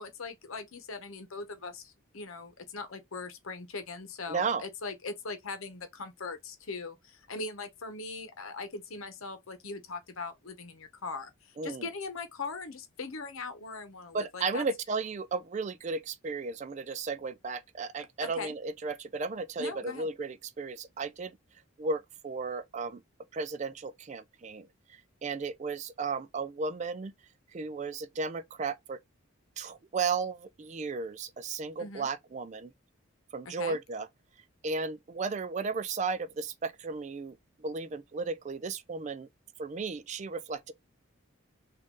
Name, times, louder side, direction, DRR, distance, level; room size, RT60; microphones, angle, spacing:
voice 1, 0.0-11.3 11.6-14.7 18.2-18.5 19.6-20.1 31.8-32.1 33.6-33.8, left 3 dB, 75° left, 0.9 m, -40 dB
voice 2, 4.3-4.6 11.6-11.9 14.1-21.4 21.8-23.0 23.3-27.1 27.5-29.0 29.6-32.7 33.3-34.1 34.6-39.3 39.6-40.7, right 4 dB, 35° right, 0.3 m, -34 dB
3.7 x 2.6 x 3.6 m
head